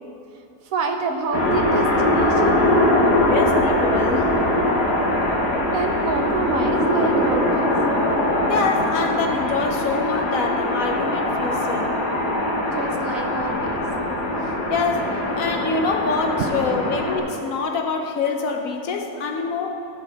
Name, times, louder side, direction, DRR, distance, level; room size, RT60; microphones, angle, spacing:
voice 1, 0.3-2.7 5.7-7.7 12.7-13.8 16.4-16.9, right 4 dB, 65° right, 4 dB, 1.0 m, -28 dB
sound 1, 1.3-17.2, left 1 dB, 80° left, 2.1 m, -22 dB
voice 2, 3.1-4.4 8.5-12.0 14.7-19.9, left 4 dB, 65° left, 4 dB, 1.0 m, -25 dB
15.0 x 6.1 x 4.0 m, 2.8 s
omnidirectional pair, 1.7 m